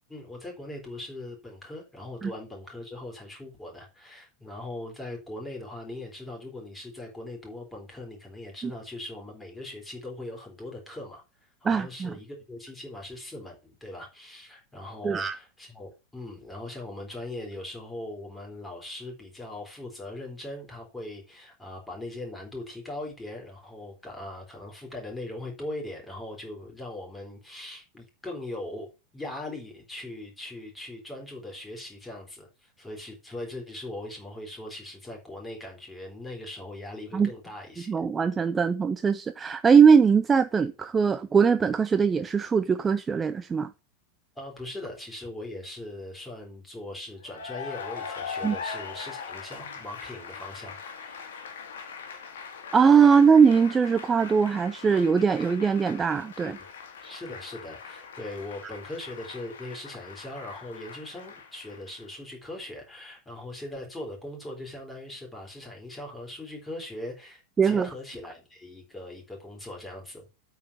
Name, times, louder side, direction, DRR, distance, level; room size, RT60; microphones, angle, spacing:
voice 1, 0.1-11.2 11.6-37.9 44.4-51.4 56.4-56.6 57.0-70.2, left 1 dB, 10° left, 3.7 m, -40 dB
voice 2, 11.6-12.1 15.0-15.4 37.1-37.3 37.9-43.7 48.4-48.6 52.7-56.6 67.6-67.9, right 6 dB, 20° right, 0.5 m, -21 dB
Cheering / Applause, 47.2-62.2, left 6 dB, 60° left, 1.9 m, -41 dB
8.4 x 4.8 x 7.0 m
figure-of-eight pair, 90°, 0 cm